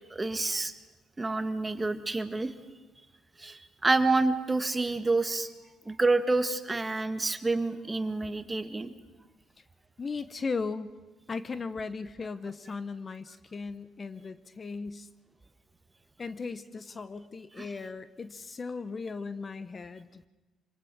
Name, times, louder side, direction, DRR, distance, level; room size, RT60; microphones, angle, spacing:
voice 1, 0.1-0.7 1.2-2.5 3.4-5.5 5.9-8.9 17.6-17.7, right 3 dB, 20° right, 10 dB, 1.7 m, -28 dB
voice 2, 10.0-10.9 11.3-15.1 16.2-20.2, left 4 dB, 35° left, 14 dB, 0.9 m, -37 dB
25.5 x 20.0 x 6.3 m, 1.2 s
supercardioid pair, 70°, 0 cm